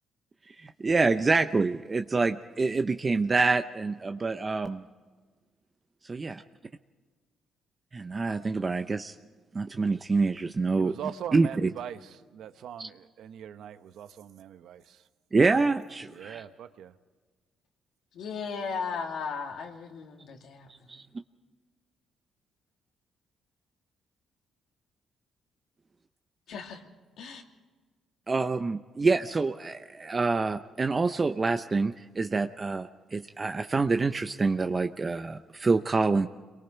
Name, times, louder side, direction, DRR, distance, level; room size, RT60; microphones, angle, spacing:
voice 1, 0.6-4.8 6.1-6.4 7.9-9.1 9.5-10.9 11.3-11.7 12.8-12.9 15.3-16.4 20.9-21.0 28.3-36.3, right 3 dB, 30° right, 0.7 m, -26 dB
voice 2, 10.8-15.0 16.1-16.9, right 9 dB, 75° right, 1.0 m, -41 dB
voice 3, 18.1-21.0 26.5-26.8 27.2-27.4, left 5 dB, 75° left, 2.7 m, -36 dB
27.5 x 23.0 x 4.6 m
cardioid pair, 90°, 0 cm